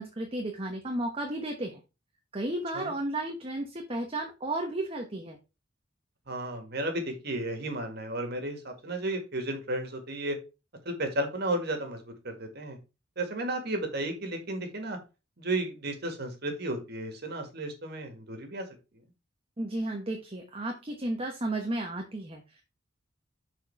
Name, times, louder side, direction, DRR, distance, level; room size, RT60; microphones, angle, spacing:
voice 1, 0.0-1.8 2.3-5.4 19.6-22.6, right 1 dB, 30° right, 3 dB, 1.0 m, -33 dB
voice 2, 6.3-10.4 10.9-12.8 13.2-15.0 15.4-18.7, right 1 dB, 60° right, 5 dB, 2.0 m, -33 dB
6.6 x 4.5 x 4.6 m, 0.28 s
head